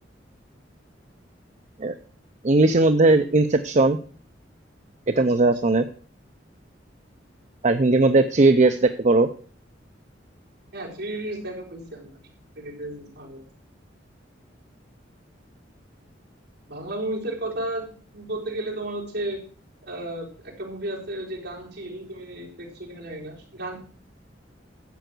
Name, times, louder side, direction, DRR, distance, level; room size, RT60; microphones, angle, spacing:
voice 1, 2.4-4.0 5.1-5.8 7.6-9.3, right 2 dB, 40° right, 8 dB, 0.6 m, -18 dB
voice 2, 5.1-5.5 10.7-12.2 12.6-13.4 16.7-19.4 19.8-23.8, right 1 dB, 65° right, -1 dB, 4.1 m, -33 dB
11.5 x 8.0 x 6.2 m, 0.43 s
head